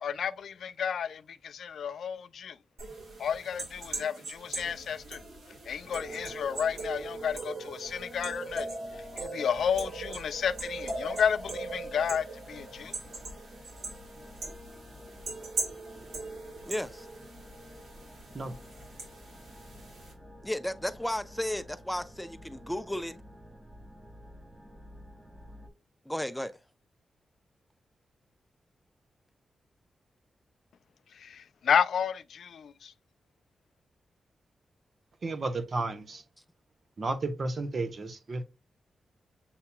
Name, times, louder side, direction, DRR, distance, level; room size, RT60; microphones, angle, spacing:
voice 1, 0.0-2.6 3.2-5.2 5.7-8.7 9.2-12.9 31.2-32.9, left 7 dB, 80° left, 0.3 m, -31 dB
sound 1, 2.8-20.1, right 3 dB, 85° right, 2.4 m, -40 dB
sound 2, 5.8-25.7, left 1 dB, 15° right, 0.9 m, -50 dB
voice 2, 16.7-17.1 20.4-23.2 26.1-26.6, left 1 dB, 5° left, 0.5 m, -34 dB
voice 3, 35.2-36.2 37.0-38.4, right 3 dB, 50° right, 0.9 m, -33 dB
7.1 x 2.8 x 2.2 m
wide cardioid pair, 100°, 0 cm